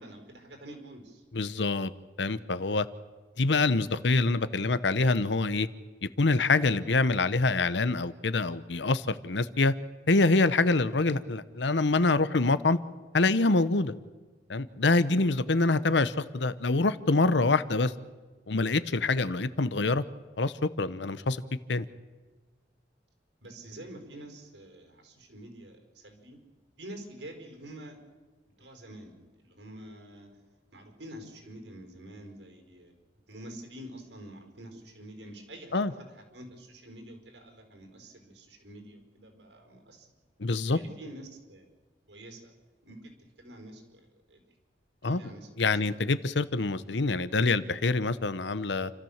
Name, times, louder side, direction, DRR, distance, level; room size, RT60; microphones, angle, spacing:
voice 1, 0.0-1.2 23.4-26.4 26.8-28.0 28.6-30.3 30.7-32.9 33.3-40.1 40.7-41.7 42.1-42.5 42.8-43.1 43.4-44.4 45.0-45.8, right 1 dB, 80° right, 3 dB, 5.0 m, -47 dB
voice 2, 1.3-1.9 2.2-2.9 3.4-5.7 6.2-9.7 10.1-12.8 13.1-13.9 14.5-17.9 18.5-20.0 20.4-21.4 21.7-21.9 35.7-35.9 40.4-40.8 45.0-45.3 45.6-48.9, left 3 dB, 80° left, 15 dB, 0.9 m, -25 dB
29.0 x 13.5 x 7.3 m, 1.3 s
head